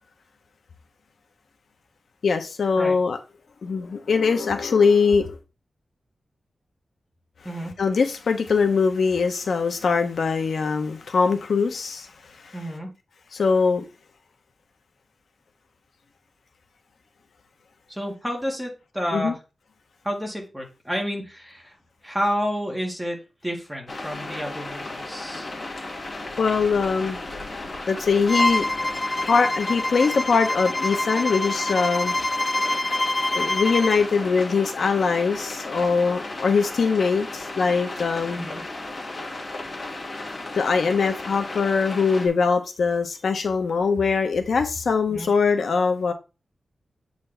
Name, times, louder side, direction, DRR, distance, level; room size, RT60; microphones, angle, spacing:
voice 1, 2.2-3.2 3.6-5.4 7.8-12.1 13.3-13.8 19.1-19.3 26.4-27.2 27.9-28.7 29.1-32.1 33.3-38.5 40.5-46.1, left 5 dB, 80° left, 6 dB, 0.8 m, -22 dB
voice 2, 12.5-12.9 17.9-19.4 20.0-21.8 22.0-25.5 38.3-38.6 45.1-45.3, equal, 5° right, -1 dB, 1.8 m, -30 dB
sound 1, 23.9-42.3, left 2 dB, 40° left, 1.9 m, -35 dB
Bowed string instrument, 28.3-34.1, left 1 dB, 20° left, 0.4 m, -26 dB
8.0 x 4.0 x 3.3 m, 0.30 s
wide cardioid pair, 175°, 0 cm